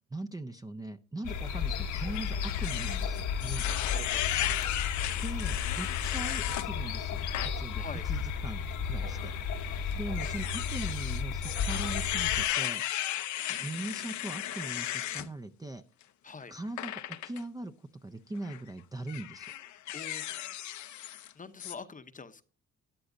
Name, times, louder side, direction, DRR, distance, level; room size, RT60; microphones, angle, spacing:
voice 1, 0.1-3.7 5.2-9.3 9.9-12.8 13.5-15.8 16.5-19.5, right 2 dB, 10° right, 8 dB, 0.5 m, -40 dB
sound 1, 1.2-12.4, left 6 dB, 85° left, 1.2 m, -33 dB
sound 2, 1.9-6.7 7.2-7.5 8.0-8.1 9.1-15.3 16.8-17.4 18.4-18.6 19.1-21.3 21.6-21.7, left 13 dB, 70° left, 0.7 m, -35 dB
voice 2, 3.9-4.3 7.7-8.0 16.2-16.5 19.9-20.3 21.4-22.4, left 4 dB, 25° left, 11 dB, 0.8 m, -44 dB
13.0 x 10.0 x 2.6 m, 0.39 s
cardioid pair, 90°, 30 cm